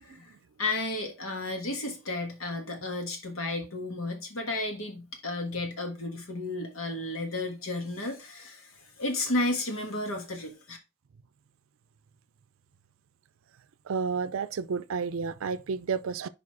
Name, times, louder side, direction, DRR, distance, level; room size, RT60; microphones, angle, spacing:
voice 1, 0.1-0.4 13.8-16.3, right 5 dB, 80° right, 0.5 m, -31 dB
voice 2, 0.6-10.8, left 2 dB, 90° left, 1.6 m, -33 dB
5.1 x 4.8 x 4.7 m
head